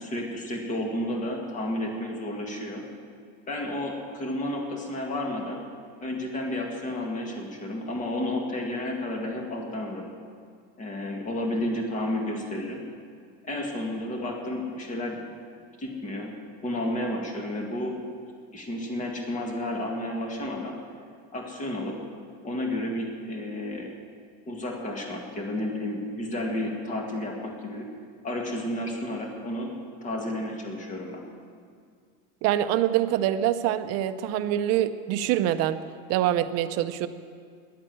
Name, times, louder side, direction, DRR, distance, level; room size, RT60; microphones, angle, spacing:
voice 1, 0.0-2.9 3.5-5.6 6.0-10.1 10.8-12.8 13.4-15.2 15.8-16.3 16.6-18.0 18.5-20.8 21.3-22.0 22.4-23.9 24.5-27.9 28.2-29.7 30.0-31.2, left 1 dB, 20° left, 1 dB, 2.0 m, -31 dB
voice 2, 32.4-35.8 36.1-37.1, right 12 dB, 50° right, 10 dB, 0.7 m, -25 dB
15.0 x 11.5 x 7.6 m, 2.1 s
cardioid pair, 165°, 33 cm